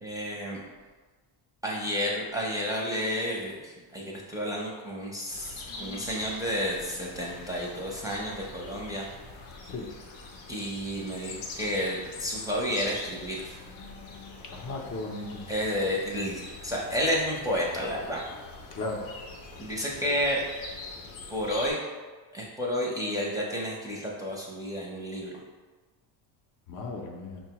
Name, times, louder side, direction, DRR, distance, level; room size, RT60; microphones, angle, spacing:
voice 1, 0.0-0.6 1.6-9.1 10.5-13.4 15.5-18.2 19.6-20.4 21.3-21.8 22.3-25.3, equal, 10° right, -4 dB, 0.5 m, -31 dB
sound 1, 5.3-21.7, left 3 dB, 80° left, 0.7 m, -44 dB
voice 2, 14.5-15.5 18.7-19.1 26.7-27.4, left 2 dB, 45° left, 0 dB, 0.6 m, -35 dB
5.5 x 2.3 x 2.8 m, 1.4 s
cardioid pair, 120°, 46 cm